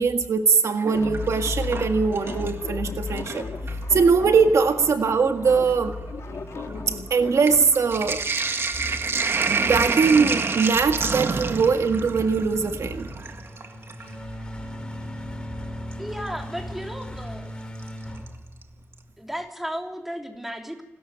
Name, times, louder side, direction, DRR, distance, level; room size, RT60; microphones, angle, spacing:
voice 1, 0.0-3.5 3.9-5.9 6.9-8.2 9.5-13.1, right 5 dB, 80° right, 6 dB, 1.8 m, -21 dB
Sink (filling or washing), 0.7-2.7 3.0-3.9 4.7-4.8 5.0-14.1 15.9-16.0 17.8-18.3 18.6-18.7 18.9-19.0, right 4 dB, 55° right, 1.7 m, -29 dB
sound 1, 0.9-7.6, left 5 dB, 70° left, 2.1 m, -38 dB
sound 2, 0.9-19.1, left 2 dB, 20° left, 3.3 m, -37 dB
voice 2, 16.0-17.6 19.2-20.8, equal, 5° right, 3 dB, 3.5 m, -34 dB
29.0 x 13.5 x 9.2 m, 0.98 s
wide cardioid pair, 110°, 5 cm